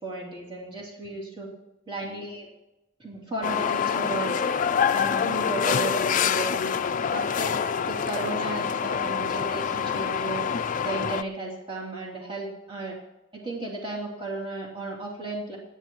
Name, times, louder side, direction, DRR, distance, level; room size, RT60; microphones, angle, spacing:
voice 1, 0.0-1.5 1.9-2.5 3.0-4.3 4.9-6.7 7.1-10.4 10.8-13.0 13.3-15.6, right 2 dB, 25° right, -4 dB, 3.1 m, -34 dB
sound 1, 3.4-11.2, left 7 dB, 40° left, 0.4 m, -26 dB
28.0 x 10.0 x 3.1 m, 0.97 s
head